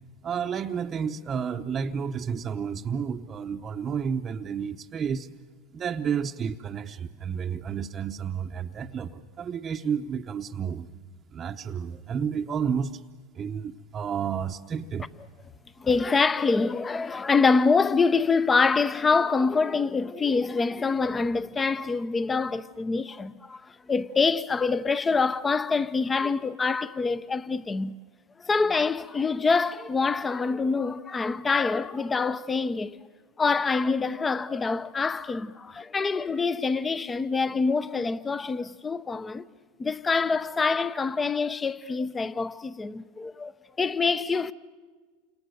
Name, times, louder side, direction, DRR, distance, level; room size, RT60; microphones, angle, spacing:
voice 1, 0.2-5.3 5.7-10.9 11.3-13.0 13.3-15.1, right 7 dB, 30° right, 0.8 m, -31 dB
voice 2, 15.8-28.0 28.4-33.0 33.4-39.4 39.8-43.5 43.8-44.5, left 4 dB, 20° left, 0.8 m, -25 dB
28.5 x 26.5 x 6.7 m
hypercardioid pair, 100°, 0 cm